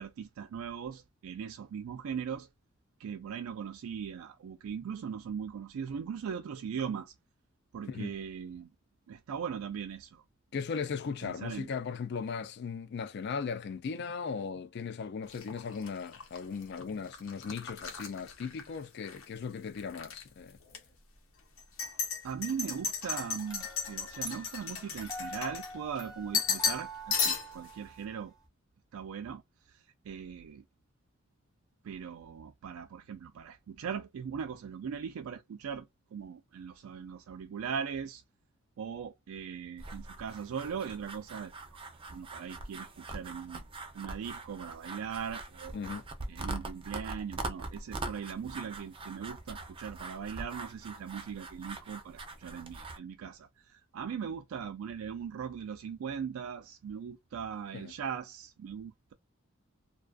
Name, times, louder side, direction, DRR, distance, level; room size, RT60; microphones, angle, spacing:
voice 1, 0.0-2.5 3.0-7.1 7.7-8.7 9.1-10.2 11.2-11.7 22.2-28.3 28.9-29.4 30.1-30.6 31.8-38.2 38.8-41.8 42.1-43.6 43.9-45.8 46.3-59.1, right 7 dB, 85° right, 0.3 m, -39 dB
voice 2, 10.5-20.6 45.7-46.0 57.7-57.9, left 5 dB, 55° left, 0.4 m, -37 dB
sound 1, 15.3-19.3 19.6-20.2 20.7-20.8 21.6-26.0 26.3-26.9 27.1-27.7, left 6 dB, 85° left, 0.8 m, -35 dB
sound 2, 23.5-28.5, right 1 dB, 20° left, 0.9 m, -46 dB
sound 3, 39.8-53.0, right 2 dB, 25° right, 0.5 m, -43 dB
2.4 x 2.3 x 2.2 m
head